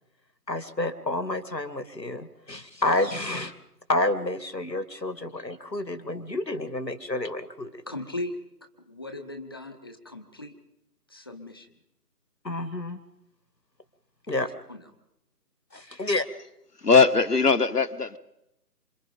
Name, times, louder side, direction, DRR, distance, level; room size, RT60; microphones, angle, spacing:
voice 1, 0.5-3.5 3.9-7.7 12.4-13.0 14.3-14.5 15.7-16.3, left 2 dB, 85° left, 2.4 m, -29 dB
voice 2, 7.9-8.4 8.9-10.6 11.1-11.7 14.4-14.8, left 2 dB, 15° left, 1.0 m, -38 dB
voice 3, 16.8-18.2, left 4 dB, 70° left, 1.5 m, -20 dB
27.0 x 26.0 x 5.3 m
figure-of-eight pair, 155°, 49 cm